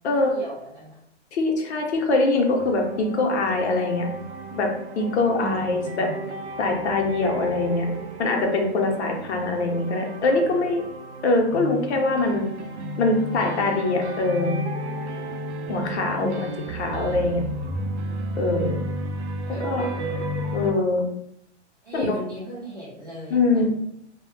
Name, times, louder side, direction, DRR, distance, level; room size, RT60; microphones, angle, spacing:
voice 1, 0.1-1.0 5.4-6.2 16.2-16.8 19.5-19.6 19.9-20.2 21.8-23.8, equal, 20° right, -8 dB, 0.3 m, -36 dB
voice 2, 1.3-4.1 4.5-4.7 5.0-6.1 6.6-7.9 8.2-10.8 11.2-12.5 13.0-14.6 15.7-16.5 16.8-17.4 18.4-18.8 19.6-19.9 20.5-21.0 21.9-22.1 23.3-23.7, left 2 dB, 70° left, 2 dB, 0.7 m, -23 dB
sound 1, 2.6-20.7, right 1 dB, 80° right, 0.5 m, -33 dB
2.1 x 2.1 x 3.1 m, 0.75 s
hypercardioid pair, 155°, 34 cm